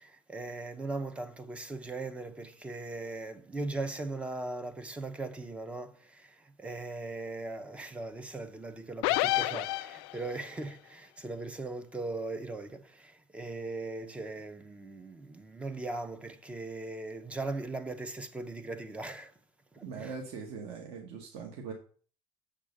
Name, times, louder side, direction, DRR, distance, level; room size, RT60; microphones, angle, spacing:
voice 1, 0.0-19.3 19.7-20.1, right 2 dB, 10° right, 0.5 m, -39 dB
sound 1, 9.0-10.4, left 17 dB, 85° left, 0.4 m, -29 dB
voice 2, 19.8-21.7, right 5 dB, 50° right, 1.2 m, -41 dB
7.0 x 3.7 x 6.4 m
cardioid pair, 160°, 12 cm